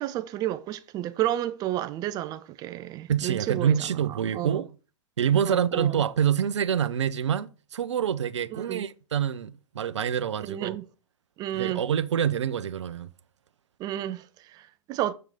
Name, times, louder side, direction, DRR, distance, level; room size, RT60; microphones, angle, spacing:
voice 1, 0.0-3.8 4.3-4.6 5.3-6.0 8.5-8.8 10.4-10.8 11.4-11.8 13.8-15.1, right 13 dB, 25° right, 0.5 m, -31 dB
voice 2, 3.1-4.7 5.2-10.7 11.5-13.1, right 8 dB, 65° right, 0.6 m, -26 dB
7.4 x 4.6 x 5.0 m
figure-of-eight pair, 110°, 16 cm